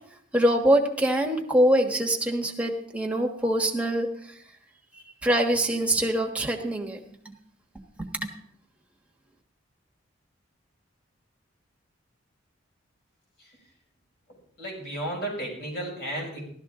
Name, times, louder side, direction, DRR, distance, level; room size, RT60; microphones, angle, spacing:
voice 1, 0.3-4.1 5.2-7.3 8.0-8.3, right 1 dB, 5° right, 1 dB, 1.3 m, -24 dB
voice 2, 14.6-16.4, right 1 dB, 55° left, -3 dB, 6.0 m, -33 dB
15.5 x 12.5 x 3.7 m, 0.63 s
head